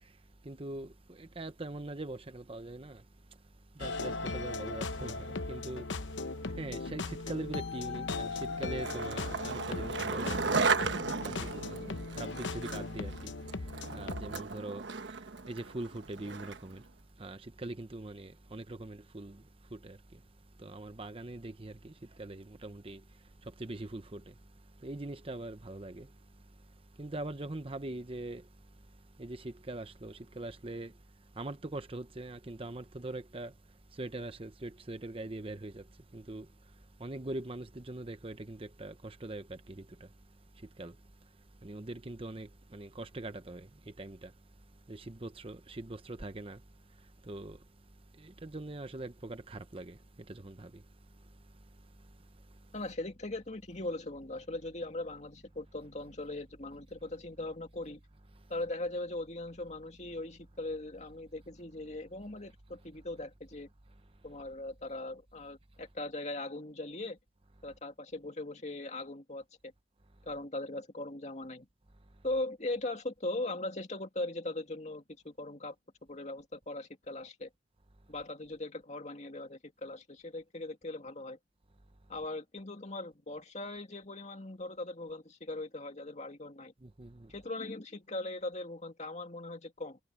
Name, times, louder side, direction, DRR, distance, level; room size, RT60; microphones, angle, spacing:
voice 1, 0.5-3.0 3.8-5.8 6.6-13.3 13.9-14.8 15.5-16.8 17.2-19.4 19.7-20.0 20.6-21.9 22.2-23.0 23.6-24.2 24.8-26.1 27.0-28.4 29.2-30.9 31.4-33.5 34.0-35.8 36.1-36.5 37.0-39.8 40.8-40.9 41.6-43.7 44.0-44.3 44.9-46.6 47.3-47.6 48.2-50.0 50.3-50.7 87.0-87.1, right 2 dB, 30° right, 0.9 m, -42 dB
sound 1, 3.8-14.4, left 3 dB, 85° left, 0.9 m, -38 dB
Skateboard, 8.4-16.8, right 4 dB, 75° right, 1.2 m, -35 dB
voice 2, 52.7-58.0 58.5-63.7 64.2-67.2 67.6-69.7 70.3-71.7 72.2-75.7 76.1-77.5 78.1-81.4 82.1-86.7 87.3-90.0, left 2 dB, 40° left, 2.3 m, -39 dB
head